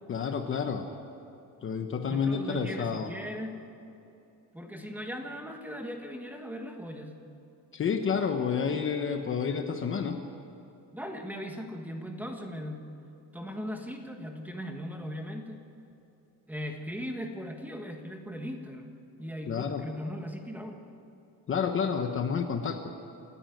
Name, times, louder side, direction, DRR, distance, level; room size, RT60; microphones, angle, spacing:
voice 1, 0.1-0.9 1.6-3.1 7.7-10.2 19.5-19.8 21.5-22.9, left 6 dB, 30° left, 5 dB, 1.0 m, -29 dB
voice 2, 2.1-3.6 4.5-7.2 10.9-12.9 13.3-15.6 16.5-20.8, equal, 5° right, 3 dB, 1.5 m, -38 dB
27.5 x 14.0 x 9.3 m, 2.8 s
cardioid pair, 175°, 39 cm